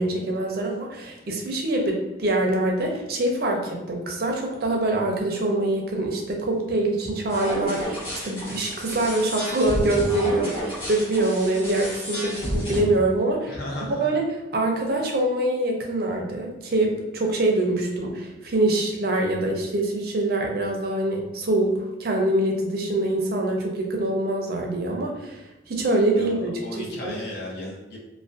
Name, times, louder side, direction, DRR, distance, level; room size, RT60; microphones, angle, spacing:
voice 1, 0.0-13.5 14.0-14.2 14.5-25.4 25.7-27.1, right 2 dB, 55° right, 1 dB, 0.5 m, -24 dB
sound 1, 7.3-12.8, equal, 25° left, 1.0 m, -31 dB
voice 2, 13.4-14.1 26.2-28.0, left 1 dB, 60° left, -3 dB, 0.6 m, -35 dB
2.4 x 2.1 x 2.4 m, 1.0 s
head